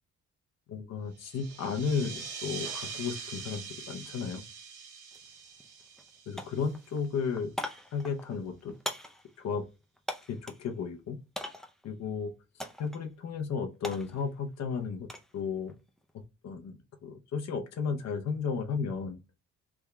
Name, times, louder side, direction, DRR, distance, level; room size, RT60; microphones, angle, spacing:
voice 1, 0.7-4.4 6.3-7.5 7.9-8.7 9.4-9.6 10.3-11.2 11.8-12.3 12.8-15.1 15.3-15.7 16.4-19.2, left 5 dB, 60° left, 5 dB, 0.8 m, -34 dB
sound 1, 1.2-7.3, right 6 dB, 85° right, 1.0 m, -43 dB
sound 2, 5.1-5.2 5.6-6.1 6.4-10.7 11.3-11.8 12.6-13.0 13.3-15.3 15.7-16.1, left 1 dB, ahead, 0.5 m, -41 dB
3.5 x 2.3 x 3.0 m, 0.27 s
cardioid pair, 90°, 30 cm